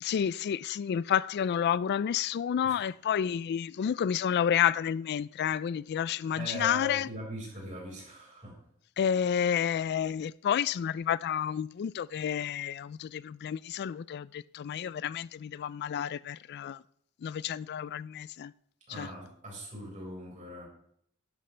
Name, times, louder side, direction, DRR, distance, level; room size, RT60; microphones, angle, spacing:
voice 1, 0.0-7.1 9.0-16.8 17.2-18.5 18.9-19.1, left 8 dB, 50° left, 0.3 m, -30 dB
voice 2, 6.3-8.6 18.9-20.7, equal, 35° right, 4.9 m, -40 dB
12.5 x 10.5 x 3.3 m
head